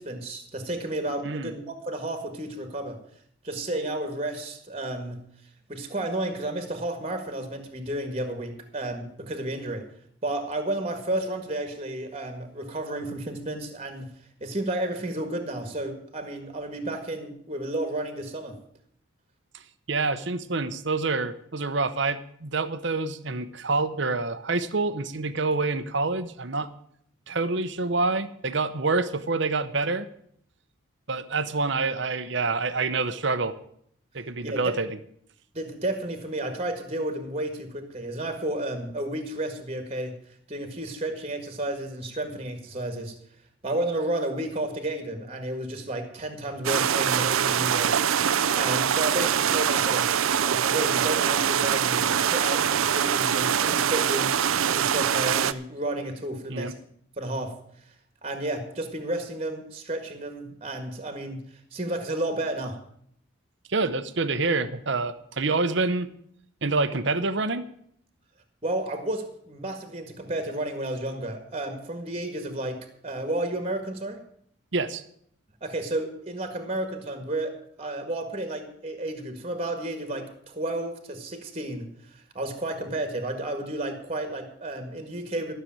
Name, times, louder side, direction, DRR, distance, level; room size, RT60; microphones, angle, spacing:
voice 1, 0.0-3.0 3.4-5.2 5.7-9.8 10.2-14.1 14.4-18.6 34.4-34.7 35.5-40.1 40.5-43.1 43.6-50.1 50.4-54.4 54.7-56.7 57.2-57.5 58.2-61.4 61.7-62.8 68.6-74.2 75.6-85.5, right 1 dB, 30° right, 7 dB, 1.7 m, -32 dB
voice 2, 19.9-26.7 27.3-30.1 31.1-33.5 34.1-34.9 56.5-56.7 63.7-66.1 66.6-67.7 74.7-75.0, right 3 dB, 60° right, 13 dB, 0.8 m, -27 dB
sound 1, 46.6-55.5, right 8 dB, 85° right, 0.6 m, -24 dB
13.0 x 6.8 x 8.8 m, 0.67 s
head